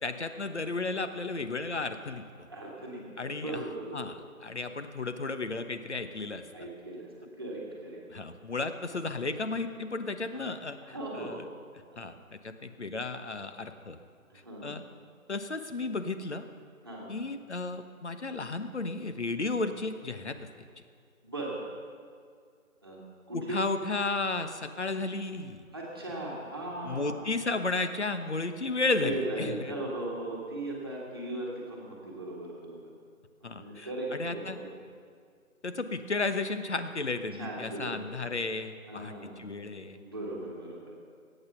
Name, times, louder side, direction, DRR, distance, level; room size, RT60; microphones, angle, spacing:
voice 1, 0.0-2.3 3.2-3.6 3.9-6.4 8.1-11.5 12.0-12.1 12.4-14.0 14.6-14.8 15.3-16.4 17.1-20.4 23.3-25.6 26.8-29.7 33.4-34.6 35.6-40.0, left 3 dB, 50° left, 9 dB, 1.1 m, -33 dB
voice 2, 2.5-4.1 6.5-7.1 7.4-8.0 10.3-10.4 10.8-11.5 11.9-12.0 14.3-14.8 16.8-17.1 21.2-21.6 22.8-23.0 23.3-23.6 25.7-27.3 28.9-32.9 33.4-34.7 37.3-37.9 38.9-39.4 39.9-40.9, right 2 dB, 15° right, -4 dB, 1.7 m, -38 dB
21.5 x 9.1 x 5.9 m, 2.1 s
figure-of-eight pair, 175°, 43 cm